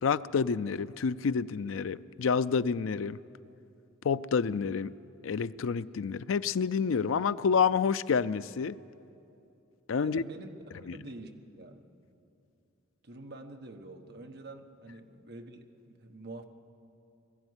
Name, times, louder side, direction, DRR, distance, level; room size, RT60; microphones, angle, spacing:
voice 1, 0.0-3.2 4.0-4.9 5.2-8.8 9.9-10.2, left 6 dB, 85° left, 15 dB, 0.4 m, -28 dB
voice 2, 10.0-11.8 13.0-16.4, right 2 dB, 55° right, 5 dB, 1.3 m, -46 dB
20.0 x 14.5 x 9.7 m, 2.7 s
head